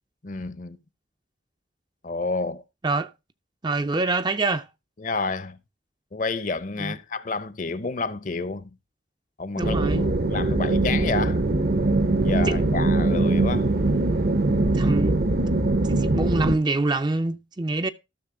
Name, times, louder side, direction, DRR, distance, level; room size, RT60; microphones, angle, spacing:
voice 1, 0.2-0.8 2.0-2.6 5.0-5.6 6.1-8.7 9.4-11.4 12.2-13.7, left 3 dB, 40° left, 0.7 m, -30 dB
voice 2, 3.6-4.7 6.8-6.9 9.6-10.1 12.5-12.6 14.7-15.2 15.8-17.9, right 2 dB, 20° right, 0.4 m, -25 dB
sound 1, 9.6-16.6, right 2 dB, 50° right, 0.8 m, -22 dB
13.5 x 6.3 x 3.7 m
head